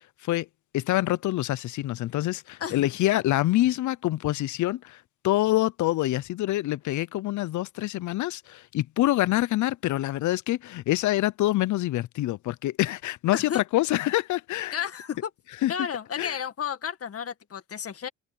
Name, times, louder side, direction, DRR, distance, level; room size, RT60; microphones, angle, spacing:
voice 1, 0.7-14.8 15.6-15.7 16.2-16.4, left 16 dB, 75° left, 0.6 m, -26 dB
voice 2, 13.3-13.6 14.7-15.3 15.7-18.1, left 8 dB, 50° left, 2.0 m, -32 dB
open air
cardioid pair, 90°, 30 cm